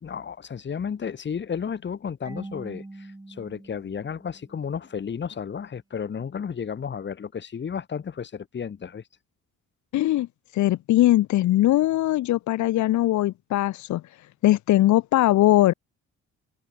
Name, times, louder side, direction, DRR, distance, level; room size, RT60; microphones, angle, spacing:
voice 1, 0.0-9.0, left 7 dB, 40° left, 1.4 m, -33 dB
Marimba xylophone / Wood, 2.2-5.0, right 2 dB, 10° right, 4.2 m, -43 dB
voice 2, 9.9-10.3 10.5-14.0 14.4-15.7, left 15 dB, 75° left, 0.8 m, -20 dB
cardioid pair, 90°, 30 cm